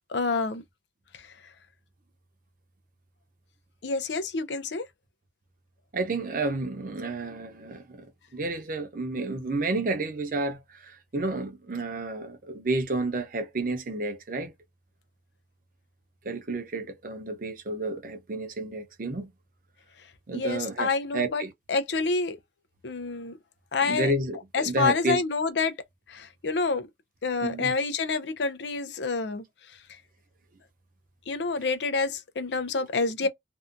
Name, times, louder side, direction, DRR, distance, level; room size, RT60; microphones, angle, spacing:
voice 1, 0.1-0.6 1.1-1.2 3.8-4.9 20.3-22.4 22.8-23.4 23.7-24.1 24.5-25.7 26.1-26.9 27.2-29.4 31.3-33.3, left 4 dB, 70° left, 0.5 m, -28 dB
voice 2, 5.9-14.5 16.2-19.3 20.3-21.5 23.8-25.2 27.4-27.7, right 2 dB, 50° right, 0.6 m, -31 dB
2.6 x 2.2 x 2.5 m
head